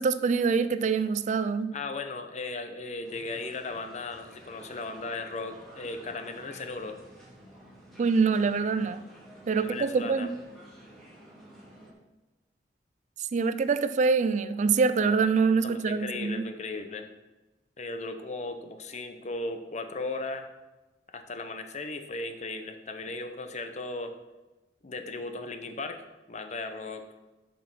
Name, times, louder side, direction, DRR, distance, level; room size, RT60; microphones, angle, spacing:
voice 1, 0.0-1.7 8.0-9.0 9.5-10.3 13.3-16.4, right 5 dB, 45° right, 13 dB, 0.4 m, -25 dB
voice 2, 1.7-6.9 9.5-10.3 15.6-17.1 17.8-20.5 21.1-24.1 24.8-27.0, left 3 dB, 40° left, 7 dB, 0.8 m, -36 dB
sound 1, 3.0-11.9, right 1 dB, ahead, 2.5 m, -51 dB
7.4 x 5.5 x 5.9 m, 1.1 s
head